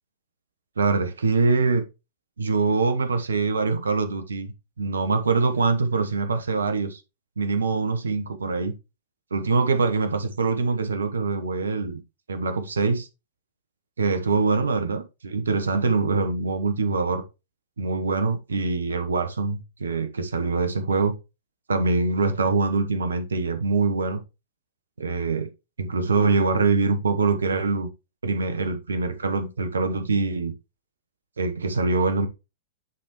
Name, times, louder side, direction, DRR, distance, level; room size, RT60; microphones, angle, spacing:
voice 1, 0.8-1.8 2.4-7.0 7.4-8.7 9.3-12.0 12.3-13.1 14.0-17.2 17.8-21.2 21.7-24.2 25.0-25.5 25.8-27.9 28.2-30.5 31.4-32.3, right 4 dB, 75° right, 1.0 m, -24 dB
9.6 x 3.6 x 3.1 m
figure-of-eight pair, 100°, 0 cm